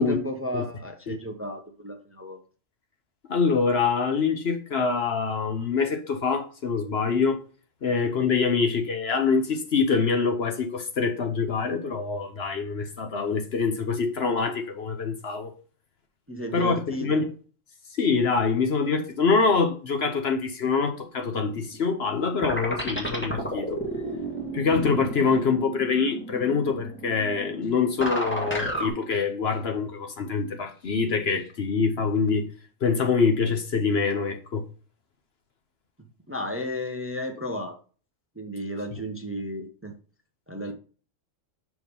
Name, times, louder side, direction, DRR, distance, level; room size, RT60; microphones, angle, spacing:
voice 1, 0.0-2.4 16.3-17.2 36.3-37.8 38.4-39.9 40.5-40.7, equal, 10° right, 0.8 m, -33 dB
voice 2, 3.3-7.4 7.8-15.5 16.5-16.8 17.0-17.3 18.0-23.8 24.5-32.5 32.8-34.6 38.9-39.0, left 5 dB, 55° left, 1.1 m, -25 dB
sound 1, 21.5-22.2 22.4-28.9, right 1 dB, 10° left, 1.6 m, -32 dB
6.0 x 4.8 x 5.3 m
omnidirectional pair, 1.3 m